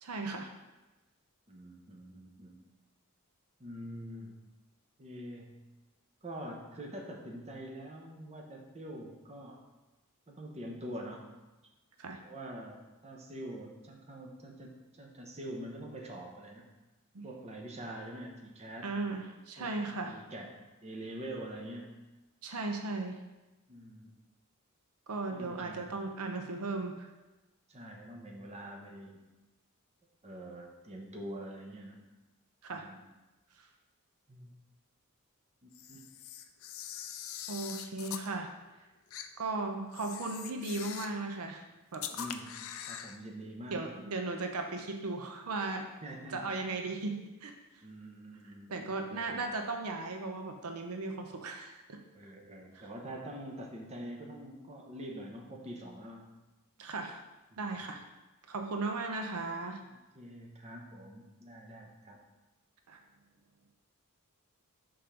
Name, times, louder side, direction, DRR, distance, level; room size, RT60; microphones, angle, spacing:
voice 1, 0.0-0.5 12.0-12.2 17.1-17.2 18.8-20.2 22.4-23.2 25.1-27.1 32.6-32.9 37.5-38.5 39.4-41.6 41.9-42.1 43.7-45.9 46.3-47.5 48.7-52.0 52.7-52.9 56.8-57.2 57.6-58.0 58.5-59.8 62.9-63.0, right 3 dB, 80° right, 4 dB, 0.6 m, -36 dB
voice 2, 1.5-2.6 3.6-4.3 5.0-5.6 6.2-9.6 10.3-11.3 12.2-12.8 13.0-16.7 17.2-19.0 19.6-19.7 20.0-22.0 23.7-24.1 25.3-25.9 27.7-29.2 30.2-32.1 32.7-33.0 34.3-34.5 35.6-36.1 42.0-43.8 46.0-46.4 47.8-49.4 52.1-56.2 57.5-57.9 60.1-62.2, right 1 dB, 30° right, 0 dB, 0.8 m, -45 dB
Camera, 35.7-38.3 39.1-39.3 39.9-41.2 41.9-43.2, left 9 dB, 65° left, 0.4 m, -43 dB
5.1 x 3.7 x 5.7 m, 1.1 s
head